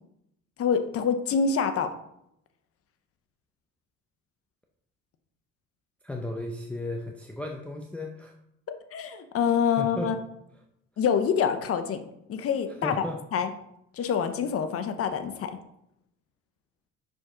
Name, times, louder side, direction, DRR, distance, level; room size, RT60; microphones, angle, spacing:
voice 1, 0.6-1.9 8.9-10.1 11.0-12.0 12.3-13.0 13.3-13.5 13.9-15.6, left 7 dB, 50° left, 8 dB, 0.7 m, -26 dB
voice 2, 6.0-8.3 9.7-10.1 12.8-13.2, left 2 dB, 5° left, 1 dB, 0.6 m, -34 dB
5.7 x 5.2 x 3.7 m, 0.76 s
cardioid pair, 110°, 31 cm